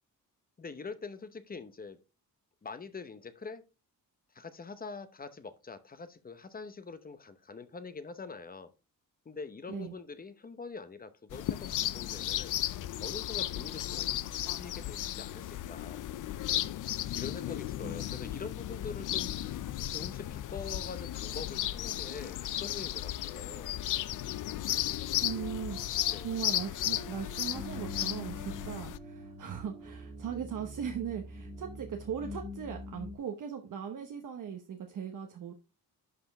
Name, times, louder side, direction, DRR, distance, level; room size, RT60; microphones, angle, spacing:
voice 1, 0.6-2.0 2.6-3.6 4.3-8.7 9.2-12.5 13.0-16.0 17.1-23.7 26.1-26.3, left 4 dB, 25° left, 12 dB, 0.8 m, -44 dB
sound 1, 11.3-29.0, left 13 dB, 55° left, 0.5 m, -35 dB
sound 2, 25.2-33.1, equal, 10° left, 1.9 m, -45 dB
voice 2, 25.2-35.5, right 7 dB, 55° right, 4 dB, 1.1 m, -39 dB
11.0 x 5.1 x 3.4 m, 0.29 s
wide cardioid pair, 160°, 37 cm